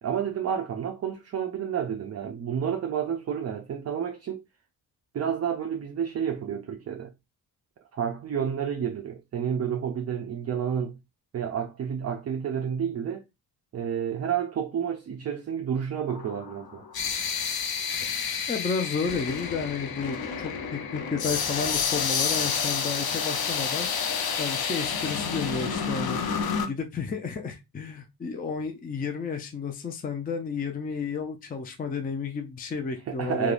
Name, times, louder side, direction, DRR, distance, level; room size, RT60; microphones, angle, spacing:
voice 1, 0.0-4.4 5.1-7.1 7.9-11.0 11.3-13.2 13.7-16.8 33.1-33.5, right 8 dB, 40° right, 0.4 m, -30 dB
sound 1, 16.1-26.7, left 6 dB, 60° left, 0.6 m, -29 dB
voice 2, 18.5-23.9 24.4-26.4 26.7-33.5, left 5 dB, 20° left, 0.4 m, -32 dB
3.4 x 2.3 x 2.4 m
wide cardioid pair, 125°, 41 cm